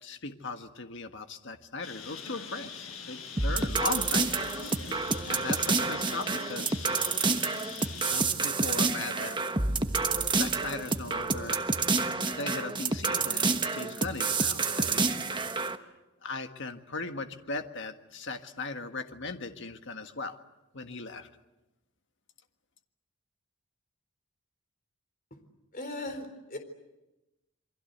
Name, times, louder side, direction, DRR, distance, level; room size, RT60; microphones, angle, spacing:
voice 1, 0.0-6.9 8.0-9.4 10.3-11.6 12.4-15.1 16.2-20.4 20.7-21.3, left 3 dB, 60° left, 6 dB, 1.7 m, -38 dB
Bird, 1.8-8.2, left 6 dB, 85° left, 4.6 m, -42 dB
sound 1, 3.4-15.8, right 4 dB, 20° right, 1.2 m, -29 dB
voice 2, 25.7-26.6, left 2 dB, 40° left, 6 dB, 4.1 m, -38 dB
28.5 x 23.5 x 8.1 m, 1.0 s
head